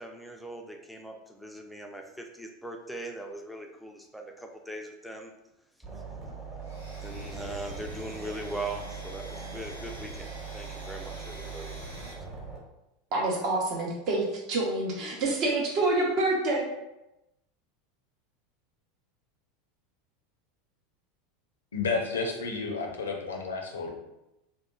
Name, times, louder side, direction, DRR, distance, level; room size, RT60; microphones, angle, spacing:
voice 1, 0.0-5.3 7.0-11.8, right 1 dB, ahead, 3 dB, 0.3 m, -40 dB
sound 1, 5.8-12.6, right 4 dB, 30° right, 1.0 m, -41 dB
Domestic sounds home sounds, 6.6-12.1, equal, 85° right, 0.5 m, -48 dB
voice 2, 13.1-16.7, right 2 dB, 50° right, -1 dB, 0.7 m, -27 dB
voice 3, 21.7-23.9, left 4 dB, 75° left, 1 dB, 0.4 m, -31 dB
2.9 x 2.1 x 2.3 m, 0.91 s
figure-of-eight pair, 80°, 0 cm